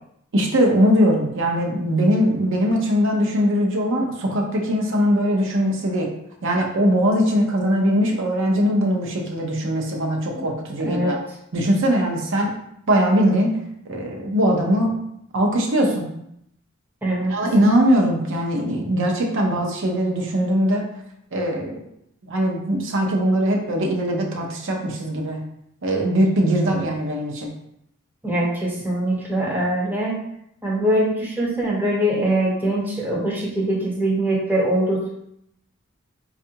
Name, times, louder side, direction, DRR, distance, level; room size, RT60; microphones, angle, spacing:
voice 1, 0.3-6.1 6.4-11.2 11.5-12.5 12.9-13.6 13.9-14.9 15.3-16.1 17.3-20.9 21.3-21.8 22.2-25.4 25.8-27.5, equal, 65° right, 0 dB, 0.7 m, -21 dB
voice 2, 10.8-11.2 17.0-17.4 26.7-26.8 28.2-30.2 30.6-35.1, right 1 dB, 10° right, -3 dB, 0.6 m, -22 dB
4.3 x 2.4 x 2.8 m, 0.76 s
head